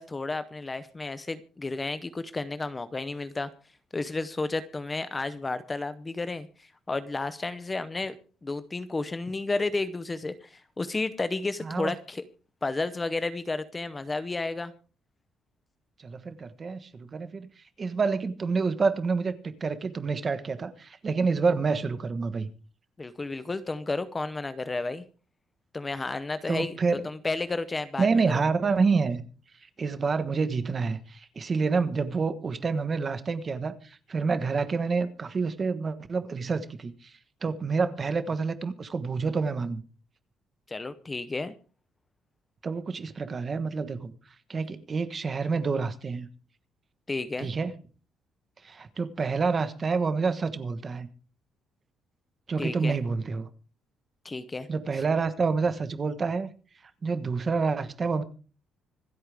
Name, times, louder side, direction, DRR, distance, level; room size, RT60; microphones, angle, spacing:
voice 1, 0.0-3.5 3.9-8.2 8.4-12.2 12.6-14.7 23.0-25.0 25.7-26.7 27.0-28.1 40.7-41.5 47.1-47.5 52.6-53.0 54.2-54.7 54.9-55.0, left 3 dB, 15° left, 12 dB, 0.7 m, -32 dB
voice 2, 11.6-11.9 16.0-17.5 17.8-22.5 26.5-27.0 28.0-29.2 29.8-37.1 37.4-39.8 42.6-44.1 44.5-46.3 47.4-47.7 48.6-51.1 52.5-53.5 54.7-56.5 57.0-58.2, right 4 dB, 25° right, 11 dB, 1.2 m, -28 dB
26.0 x 8.7 x 3.5 m, 0.36 s
cardioid pair, 175°, 0 cm